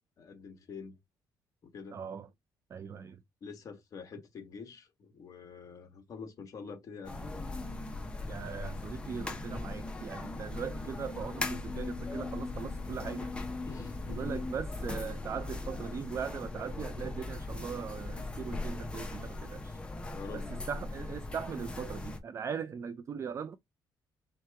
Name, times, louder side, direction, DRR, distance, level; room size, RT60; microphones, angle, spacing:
voice 1, 0.2-1.0 1.6-2.0 3.4-7.4 13.7-14.3 20.0-20.5, left 5 dB, 45° left, 1.2 m, -46 dB
voice 2, 1.9-2.3 2.7-3.2 8.3-13.3 14.1-19.8 20.3-23.6, right 7 dB, 35° right, 0.4 m, -40 dB
sound 1, 7.0-22.2, left 2 dB, 10° left, 0.7 m, -39 dB
4.5 x 2.9 x 3.3 m
cardioid pair, 145°, 8 cm